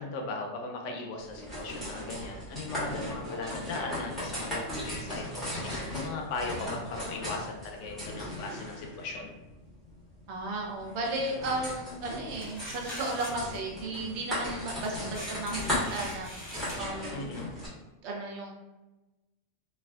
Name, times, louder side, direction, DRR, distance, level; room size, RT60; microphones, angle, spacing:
voice 1, 0.0-9.3 17.1-17.5, left 3 dB, 90° left, 2 dB, 0.9 m, -38 dB
sound 1, 1.2-17.7, left 1 dB, ahead, 1.1 m, -37 dB
voice 2, 10.3-16.3 16.8-17.3 18.0-18.5, right 2 dB, 70° right, 0 dB, 0.9 m, -34 dB
sound 2, 12.4-13.6 14.8-16.8, left 1 dB, 30° left, 0.6 m, -43 dB
3.3 x 2.4 x 2.3 m, 1.1 s
omnidirectional pair, 1.2 m